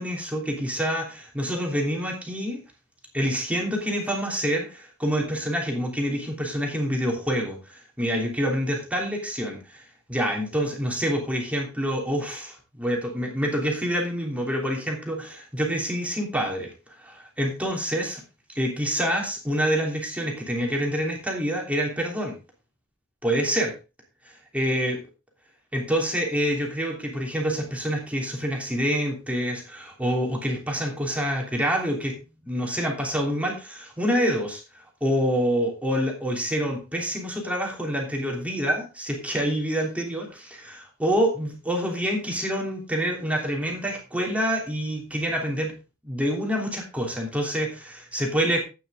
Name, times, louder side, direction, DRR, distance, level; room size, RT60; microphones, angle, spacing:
voice 1, 0.0-2.6 3.1-9.8 10.1-16.7 17.0-18.2 18.5-22.4 23.2-23.7 24.5-25.0 25.7-32.2 32.4-45.7 46.0-48.6, equal, 5° right, 0 dB, 3.1 m, -27 dB
12.0 x 9.1 x 3.8 m, 0.30 s
head